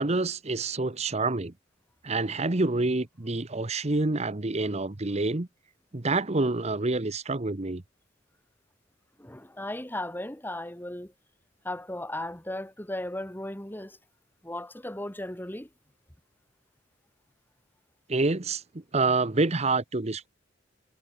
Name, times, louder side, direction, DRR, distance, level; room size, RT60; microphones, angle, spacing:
voice 1, 0.0-1.5 2.0-5.5 5.9-7.8 18.1-18.6 18.9-20.3, right 3 dB, 35° right, 1.1 m, -27 dB
voice 2, 9.2-11.1 11.6-14.0 14.4-15.7, left 1 dB, 10° left, 2.3 m, -36 dB
head